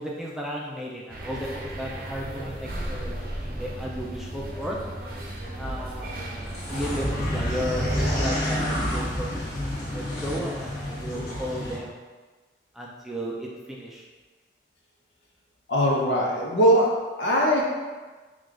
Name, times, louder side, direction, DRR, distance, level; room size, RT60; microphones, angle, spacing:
voice 1, 0.0-4.8 5.6-9.4 9.9-11.9 12.7-14.0, equal, ahead, -3 dB, 0.4 m, -34 dB
sound 1, 1.1-8.1, right 1 dB, 50° right, 0.6 m, -35 dB
sound 2, 5.7-5.9 6.2-8.0 8.3-9.0 9.3-10.7 11.1-11.2, equal, 65° left, 1.5 m, -40 dB
sound 3, 6.7-11.8, equal, 50° left, 1.1 m, -29 dB
voice 2, 15.7-17.6, equal, 85° left, -2 dB, 0.9 m, -21 dB
4.9 x 2.4 x 3.6 m, 1.3 s
head